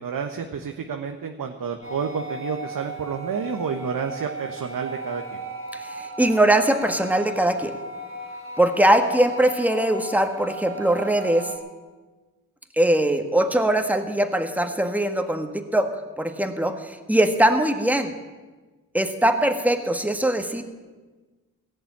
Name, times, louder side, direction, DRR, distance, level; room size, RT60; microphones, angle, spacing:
voice 1, 0.0-5.4, right 6 dB, 60° right, 5 dB, 1.2 m, -30 dB
sound 1, 1.8-11.6, right 1 dB, 35° right, 1.7 m, -36 dB
voice 2, 5.7-7.8 8.6-11.5 12.8-15.9 16.2-18.1 18.9-20.6, right 1 dB, 5° right, 6 dB, 1.7 m, -21 dB
16.5 x 6.8 x 8.8 m, 1.3 s
supercardioid pair, 45°, 37 cm